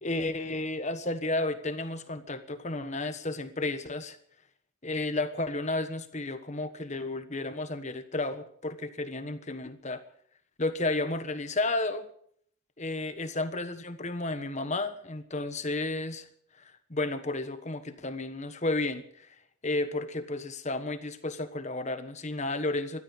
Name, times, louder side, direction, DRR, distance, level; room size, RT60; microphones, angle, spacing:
voice 1, 0.0-4.2 4.8-10.0 10.6-12.1 12.8-16.3 16.9-19.3 19.6-23.0, left 2 dB, 35° left, 10 dB, 1.3 m, -32 dB
16.0 x 12.5 x 7.2 m, 0.63 s
head